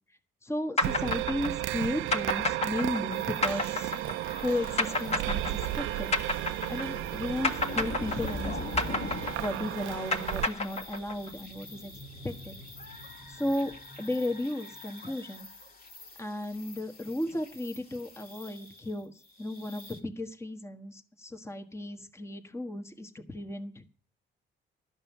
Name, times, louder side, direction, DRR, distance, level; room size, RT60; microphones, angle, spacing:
voice 1, 0.4-3.9 4.4-6.1 6.7-9.1 9.4-11.9 12.2-12.6 13.3-13.7 14.0-15.5 16.2-23.9, left 1 dB, 15° left, 6 dB, 1.3 m, -35 dB
sound 1, 0.8-7.1 7.4-11.3, left 2 dB, 30° left, 1.6 m, -30 dB
sound 2, 0.8-10.5, right 15 dB, 85° right, 0.5 m, -34 dB
sound 3, 3.1-20.0, left 2 dB, 50° left, 2.1 m, -44 dB
12.5 x 5.5 x 9.2 m, 0.43 s
cardioid pair, 90°, 20 cm